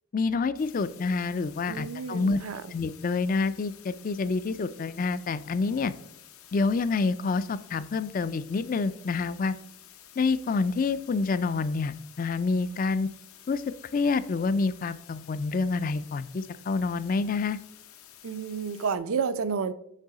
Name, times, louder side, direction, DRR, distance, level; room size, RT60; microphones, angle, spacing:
voice 1, 0.1-2.4 2.7-5.9 6.5-9.5 10.2-13.1 13.5-13.6 13.9-17.6, left 4 dB, 40° left, 0.3 m, -27 dB
sound 1, 0.6-19.0, left 10 dB, 80° left, 0.8 m, -52 dB
voice 2, 1.7-2.6 18.2-19.7, right 5 dB, 75° right, 0.5 m, -30 dB
6.6 x 5.5 x 4.8 m
head